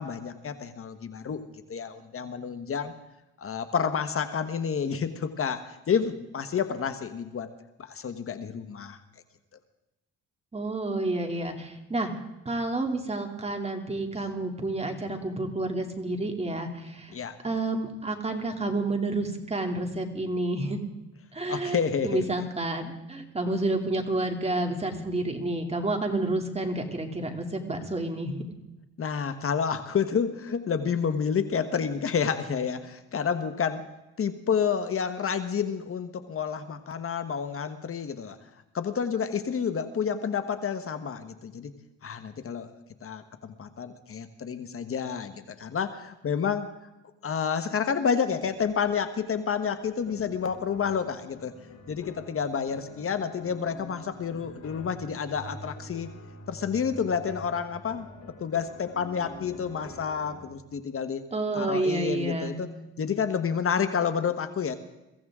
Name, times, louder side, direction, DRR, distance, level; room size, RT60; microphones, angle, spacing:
voice 1, 0.0-1.4 1.7-2.9 3.4-7.5 7.8-9.0 17.1-17.4 21.5-22.2 29.0-33.8 34.2-38.4 38.7-41.7 42.0-42.7 43.0-46.7 47.2-51.5 51.9-56.1 56.5-58.1 58.4-61.2 61.5-62.7 63.0-64.7, left 6 dB, 45° left, 9 dB, 1.3 m, -29 dB
voice 2, 10.5-12.1 12.4-17.1 17.4-20.8 21.3-28.4 61.3-62.6, right 2 dB, 20° right, 3 dB, 2.8 m, -29 dB
sound 1, 50.1-60.5, left 1 dB, 65° left, 5.2 m, -46 dB
23.0 x 16.0 x 3.7 m, 0.95 s
cardioid pair, 90°, 30 cm